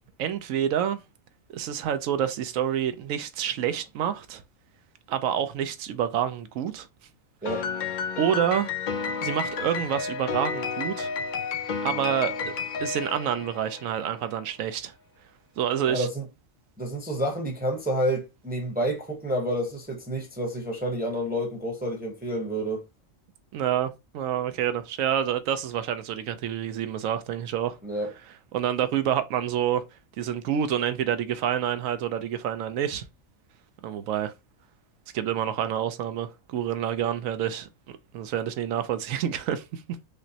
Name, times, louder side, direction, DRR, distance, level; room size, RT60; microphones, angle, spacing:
voice 1, 0.2-1.0 1.5-4.4 5.1-6.9 7.4-7.5 8.2-8.7 9.2-11.1 11.8-12.5 12.8-14.9 15.6-16.1 23.5-27.8 28.5-29.8 30.2-33.0 33.8-34.3 35.1-37.7 38.1-39.8, right 9 dB, 80° right, 1.0 m, -28 dB
Piano, 7.5-14.0, left 5 dB, 90° left, 0.4 m, -31 dB
voice 2, 15.9-16.2 16.8-22.8 27.8-28.1, right 1 dB, 10° right, 0.6 m, -29 dB
5.1 x 2.0 x 2.7 m
omnidirectional pair, 1.4 m